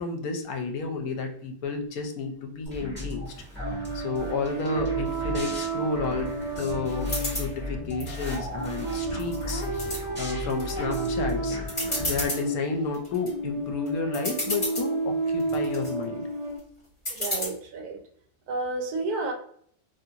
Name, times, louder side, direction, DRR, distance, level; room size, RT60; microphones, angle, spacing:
voice 1, 0.0-3.2 3.6-9.6 10.2-11.6 12.0-16.2, left 4 dB, 80° left, 4 dB, 1.1 m, -31 dB
sound 1, 2.7-12.3, left 1 dB, 10° right, 1.1 m, -36 dB
sound 2, 3.6-16.6, right 3 dB, 30° right, 0.5 m, -32 dB
sound 3, 7.1-7.5 8.0-8.8 9.2-10.0 10.5-11.0 11.3-11.4 11.7-12.4 12.9-13.3 13.9-14.0 14.1-14.9 15.4-15.9 17.1-17.5, left 1 dB, 30° left, 1.3 m, -31 dB
voice 2, 17.1-18.0 18.5-19.3, right 3 dB, 85° right, 4 dB, 1.2 m, -31 dB
2.9 x 2.5 x 2.7 m, 0.62 s
omnidirectional pair, 1.6 m